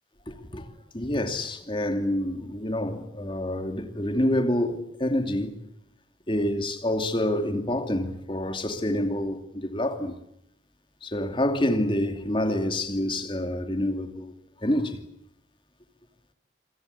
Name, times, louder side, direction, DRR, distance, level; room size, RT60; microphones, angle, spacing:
voice 1, 0.3-0.7 0.9-5.6 6.3-10.2 11.0-14.3 14.6-15.0, left 1 dB, 30° left, 2.6 m, -27 dB
27.5 x 23.0 x 8.3 m
head